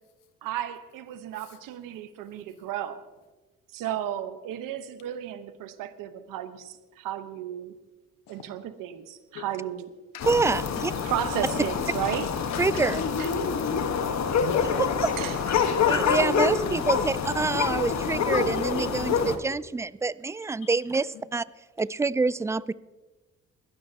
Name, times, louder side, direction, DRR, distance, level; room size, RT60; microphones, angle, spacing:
voice 1, 0.4-3.1 3.7-7.7 8.3-9.9 11.0-12.3 12.7-13.3 15.2-15.4 20.9-21.0, right 11 dB, 80° right, 11 dB, 1.0 m, -34 dB
sound 1, 10.2-19.4, left 6 dB, 55° left, 1.3 m, -26 dB
voice 2, 10.3-10.9 12.6-13.0 15.8-21.4 21.8-22.7, right 3 dB, 10° right, 19 dB, 0.4 m, -26 dB
voice 3, 12.5-12.8 13.2-14.9 16.7-16.8 18.8-18.9 20.6-20.7, left 8 dB, 80° left, 7 dB, 1.1 m, -41 dB
21.0 x 12.0 x 2.8 m, 1.2 s
supercardioid pair, 55°, 33 cm